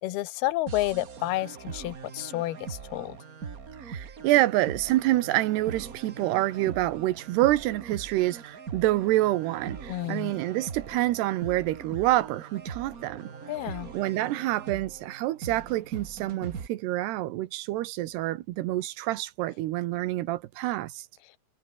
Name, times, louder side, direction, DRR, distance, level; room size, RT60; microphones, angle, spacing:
voice 1, 0.0-3.2 9.9-10.3 13.5-13.9, left 16 dB, 75° left, 3.1 m, -30 dB
sound 1, 0.7-16.7, right 6 dB, 70° right, 0.8 m, -41 dB
voice 2, 3.8-13.3 13.9-21.1, right 16 dB, 85° right, 3.1 m, -27 dB
omnidirectional pair, 4.7 m